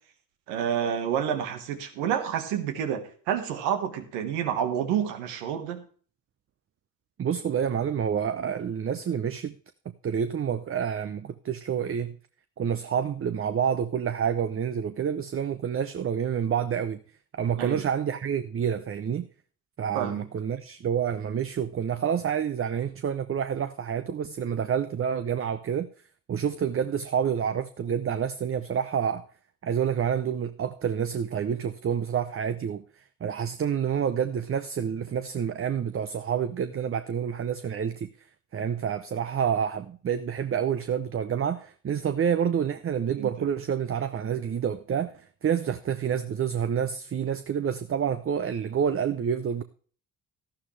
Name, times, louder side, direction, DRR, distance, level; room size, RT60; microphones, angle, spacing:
voice 1, 0.5-5.8 17.6-17.8 19.9-20.2 43.1-43.3, right 9 dB, 90° right, 1.6 m, -29 dB
voice 2, 7.2-9.5 10.0-12.1 12.6-17.0 17.3-19.3 19.8-25.9 26.3-29.2 29.6-32.8 33.2-38.1 38.5-49.6, right 8 dB, 35° right, 0.7 m, -28 dB
12.0 x 11.5 x 3.3 m
supercardioid pair, 65°, 39 cm